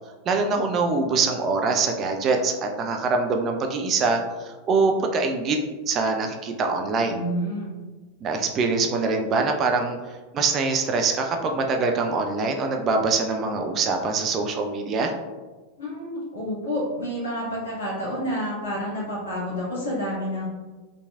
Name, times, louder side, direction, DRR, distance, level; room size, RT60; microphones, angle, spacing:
voice 1, 0.3-5.6 5.9-7.2 8.2-15.1, right 4 dB, 30° right, 3 dB, 0.3 m, -24 dB
voice 2, 7.1-7.7 15.8-20.5, equal, 65° left, -6 dB, 1.3 m, -29 dB
2.9 x 2.6 x 2.3 m, 1.3 s
figure-of-eight pair, 90°, 0 cm